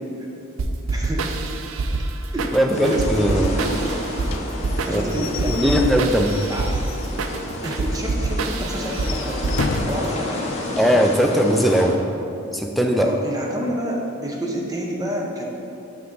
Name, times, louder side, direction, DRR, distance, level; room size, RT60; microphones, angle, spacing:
sound 1, 0.6-10.1, right 3 dB, 80° right, 0.4 m, -26 dB
voice 1, 0.9-1.5 2.3-4.0 4.7-5.9 6.4-6.7 7.6-10.6 13.0-15.5, equal, 20° right, -2 dB, 0.7 m, -29 dB
voice 2, 2.5-3.5 4.9-6.4 10.8-12.0 12.5-13.1, equal, ahead, 2 dB, 0.3 m, -19 dB
sound 2, 2.7-11.9, left 1 dB, 30° left, 0.7 m, -31 dB
Slam / Squeak / Wood, 4.3-7.5 7.8-7.9 8.2-8.3 8.8-10.1, left 4 dB, 80° left, 0.4 m, -32 dB
5.9 x 5.8 x 3.8 m, 2.7 s
head